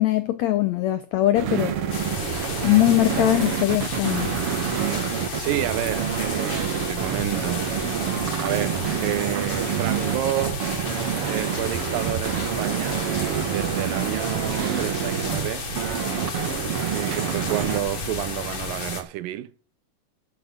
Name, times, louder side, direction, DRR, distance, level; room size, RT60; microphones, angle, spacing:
voice 1, 0.0-1.7 2.6-4.3, left 15 dB, 85° left, 1.6 m, -21 dB
sound 1, 1.3-17.8, right 8 dB, 55° right, 1.8 m, -27 dB
sound 2, 1.9-19.0, left 4 dB, 50° left, 3.2 m, -33 dB
voice 2, 5.3-10.7 11.2-13.0 13.4-15.7 16.9-19.5, right 15 dB, 80° right, 2.3 m, -30 dB
11.0 x 8.3 x 7.0 m
omnidirectional pair, 4.0 m